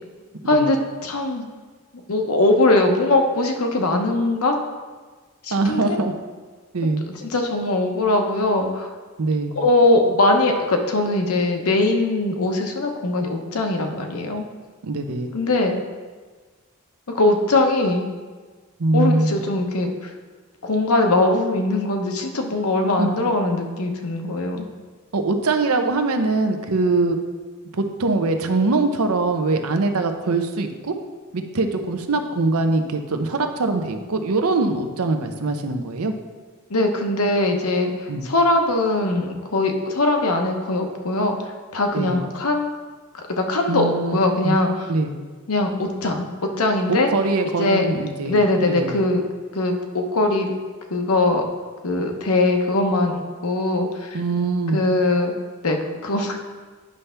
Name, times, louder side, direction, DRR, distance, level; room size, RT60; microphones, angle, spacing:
voice 1, 0.5-1.5 2.1-4.6 5.4-6.0 7.2-8.9 9.5-14.4 15.3-15.8 17.1-18.1 18.9-20.1 20.6-24.7 36.7-41.4 41.7-42.7 43.3-44.9 45.5-47.1 47.6-47.9 48.2-49.2 49.5-50.5 50.9-51.4 51.8-54.2 54.7-55.3 55.6-56.4, left 2 dB, 75° left, 3 dB, 0.9 m, -21 dB
voice 2, 5.5-6.1 6.7-7.0 9.2-9.5 14.8-15.3 18.8-19.3 23.0-23.2 25.1-27.2 27.7-30.9 31.3-36.1 38.1-38.2 41.9-42.2 43.7-44.1 44.4-44.5 44.9-45.1 46.9-49.0 54.1-54.8, right 3 dB, 80° right, 6 dB, 0.7 m, -22 dB
9.6 x 3.4 x 5.7 m, 1.4 s
head